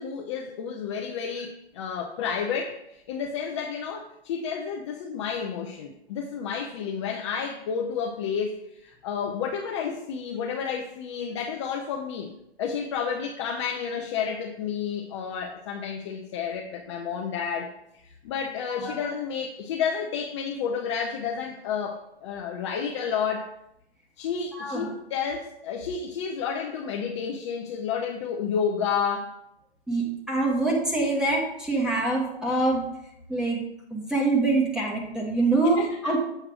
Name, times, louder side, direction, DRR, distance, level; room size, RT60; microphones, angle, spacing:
voice 1, 0.0-12.3 12.6-17.7 18.0-23.5 24.2-29.3 35.8-36.2, left 6 dB, 30° left, 0 dB, 0.5 m, -31 dB
voice 2, 24.5-24.9 29.9-32.8 33.3-33.6 33.9-36.2, right 2 dB, ahead, -2 dB, 1.2 m, -25 dB
7.5 x 3.2 x 6.1 m, 0.81 s
hypercardioid pair, 145°, 33 cm